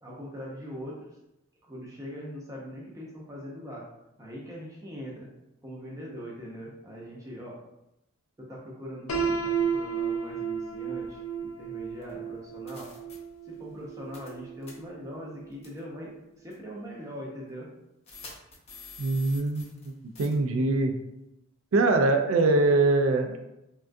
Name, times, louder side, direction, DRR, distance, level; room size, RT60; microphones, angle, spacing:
voice 1, 0.0-1.1 1.7-3.8 4.2-5.3 5.6-7.6 8.4-12.9 13.5-17.7, equal, 15° right, -4 dB, 0.6 m, -41 dB
Piano, 9.1-15.0, right 6 dB, 80° left, 0.5 m, -32 dB
sound 1, 12.0-12.1 12.7-13.2 14.1-14.4 14.6-14.7 15.6-15.8 16.5-16.6 18.1-19.9 20.1-20.3, left 4 dB, 30° left, 0.6 m, -46 dB
voice 2, 19.0-19.9 20.2-20.9 21.7-23.5, right 2 dB, 65° right, 6 dB, 0.4 m, -23 dB
3.5 x 2.3 x 2.5 m, 0.89 s
head